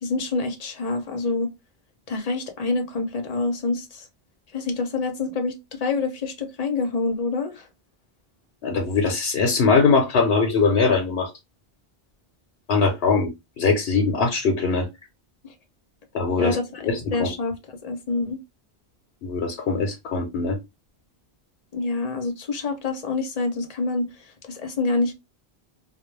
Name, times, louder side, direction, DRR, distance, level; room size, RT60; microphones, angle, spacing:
voice 1, 0.0-1.5 2.1-4.1 4.5-7.7 15.4-15.5 16.4-17.6 17.8-18.4 21.7-24.1 24.5-25.1, left 3 dB, 45° left, 0.6 m, -26 dB
voice 2, 8.6-11.3 12.7-13.3 13.6-14.9 16.1-16.6 16.8-17.3 19.2-20.6, left 4 dB, 85° left, 0.9 m, -21 dB
2.3 x 2.1 x 3.1 m
omnidirectional pair, 1.0 m